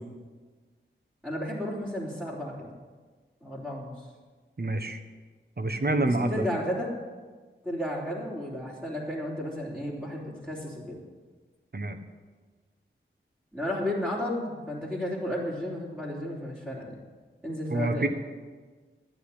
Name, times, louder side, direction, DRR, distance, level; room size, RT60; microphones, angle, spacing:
voice 1, 1.2-2.7 3.4-4.1 6.1-6.9 7.6-11.0 13.5-16.9 17.4-18.1, left 1 dB, 10° right, -8 dB, 3.6 m, -33 dB
voice 2, 4.6-5.0 5.6-6.5 11.7-12.0 17.7-18.1, right 2 dB, 50° right, 7 dB, 1.4 m, -27 dB
12.5 x 8.9 x 9.9 m, 1.4 s
wide cardioid pair, 65°, 21 cm